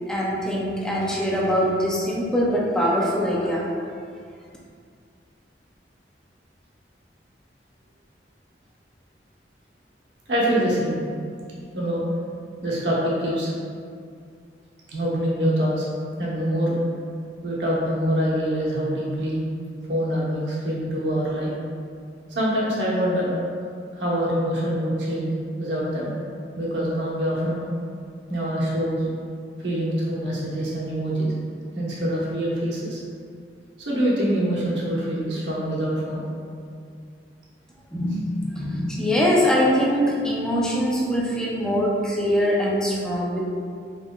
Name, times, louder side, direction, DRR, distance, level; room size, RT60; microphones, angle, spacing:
voice 1, 0.1-3.7 37.9-43.4, equal, 5° left, -4 dB, 0.4 m, -23 dB
voice 2, 10.3-11.0 11.7-12.0 12.6-13.5 14.9-15.9 16.2-16.8 17.4-19.5 19.9-21.5 22.3-23.3 23.9-26.1 26.5-27.6 28.3-29.1 29.6-31.3 31.7-33.0 33.8-36.2, equal, 75° right, -5 dB, 1.0 m, -25 dB
4.7 x 3.2 x 2.3 m, 2.3 s
head